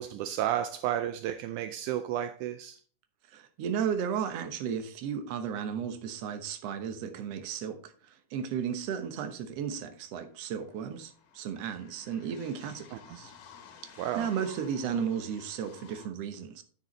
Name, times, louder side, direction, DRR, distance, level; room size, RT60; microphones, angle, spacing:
voice 1, 0.0-2.8 14.0-14.3, right 11 dB, 80° right, 1.9 m, -32 dB
voice 2, 3.3-13.3 13.8-16.6, right 7 dB, 65° right, 1.9 m, -34 dB
sound 1, 9.5-9.6 9.8-16.1, left 7 dB, 85° left, 2.8 m, -53 dB
10.0 x 6.7 x 3.2 m
omnidirectional pair, 3.6 m